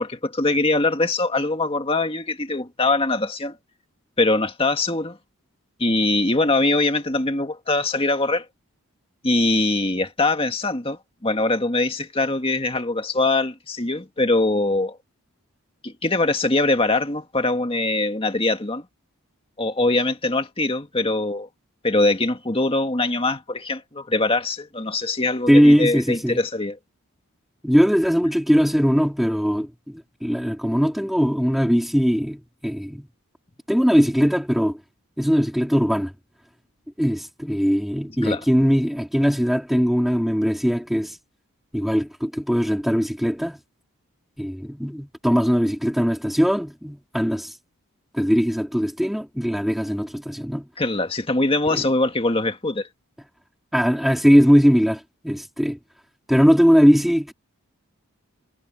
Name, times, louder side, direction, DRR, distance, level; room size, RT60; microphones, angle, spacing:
voice 1, 0.0-3.6 4.2-5.2 5.8-8.5 9.2-15.0 15.8-18.8 19.6-21.5 21.8-26.8 38.2-38.4 50.8-52.9, left 2 dB, 25° left, 1.9 m, -22 dB
voice 2, 25.5-26.4 27.6-33.1 33.7-34.8 35.2-36.1 37.0-41.2 41.7-43.6 44.4-47.5 48.1-50.7 51.7-51.8 53.7-55.8 56.3-57.3, equal, ahead, 2.2 m, -20 dB
head